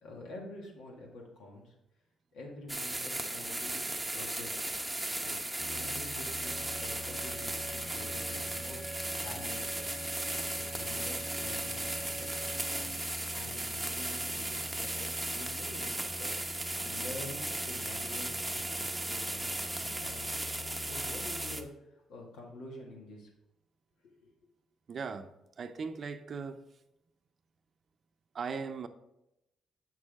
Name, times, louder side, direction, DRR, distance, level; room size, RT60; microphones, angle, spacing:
voice 1, 0.0-1.7 2.3-4.6 5.2-5.4 5.7-8.8 9.2-9.9 10.5-12.3 12.7-13.0 13.3-16.3 16.8-20.3 20.8-23.3 24.0-24.3, left 2 dB, 85° left, 2.0 m, -48 dB
sound 1, 2.7-21.6, right 1 dB, 10° right, 0.8 m, -36 dB
sound 2, 5.6-21.7, left 2 dB, 15° left, 0.5 m, -48 dB
Bowed string instrument, 6.1-13.0, right 1 dB, 50° left, 2.2 m, -47 dB
voice 2, 24.9-25.3 25.6-26.6 28.3-28.9, right 5 dB, 50° right, 0.6 m, -38 dB
7.2 x 6.3 x 3.6 m
cardioid pair, 90°, 0 cm